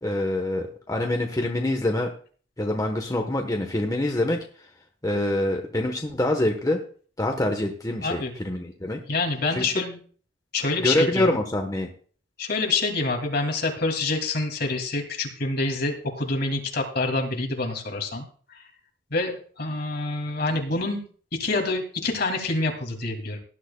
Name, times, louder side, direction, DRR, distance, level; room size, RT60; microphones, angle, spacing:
voice 1, 0.0-2.1 2.6-4.4 5.0-6.8 7.2-9.0 9.5-9.6 10.8-11.9, left 1 dB, 20° left, 3 dB, 1.0 m, -25 dB
voice 2, 9.1-10.0 10.5-11.3 12.4-18.2 19.1-21.0 21.4-23.4, left 3 dB, 55° left, 2 dB, 2.4 m, -26 dB
18.5 x 11.0 x 2.2 m, 0.43 s
head